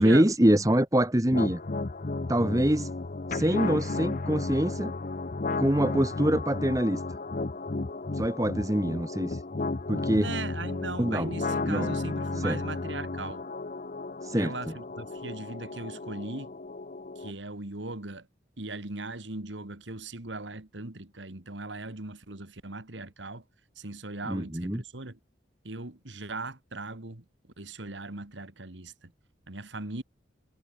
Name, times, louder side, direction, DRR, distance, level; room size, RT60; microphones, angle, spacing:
voice 1, 0.0-1.6 2.3-2.9 3.3-4.9 5.6-7.0 8.1-9.4 9.9-10.3 11.0-11.3 11.7-11.9 12.4-12.6 14.2-14.7 24.3-24.8, right 1 dB, 20° right, 1.5 m, -25 dB
sound 1, 1.3-17.3, left 3 dB, 45° left, 0.7 m, -33 dB
voice 2, 10.1-13.4 14.4-16.5 17.2-18.3 18.6-23.4 23.8-25.2 25.6-27.2 27.6-29.1 29.5-30.0, right 2 dB, 80° right, 2.2 m, -38 dB
head